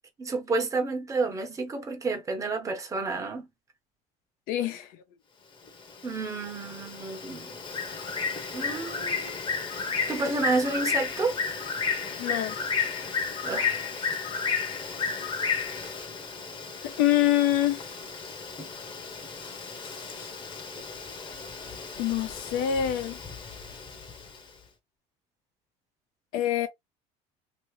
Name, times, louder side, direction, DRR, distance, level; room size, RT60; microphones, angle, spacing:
voice 1, 0.2-3.5 6.0-7.5 8.5-9.4 10.1-11.3 13.4-13.8, right 3 dB, 20° right, 1.1 m, -30 dB
voice 2, 4.5-4.9 12.2-12.6 16.8-17.9 20.2-20.3 22.0-23.2 26.3-26.7, left 12 dB, 80° left, 1.0 m, -25 dB
Bird, 5.7-24.4, left 5 dB, 30° left, 1.1 m, -33 dB
3.0 x 2.8 x 3.2 m
cardioid pair, 120°, 16 cm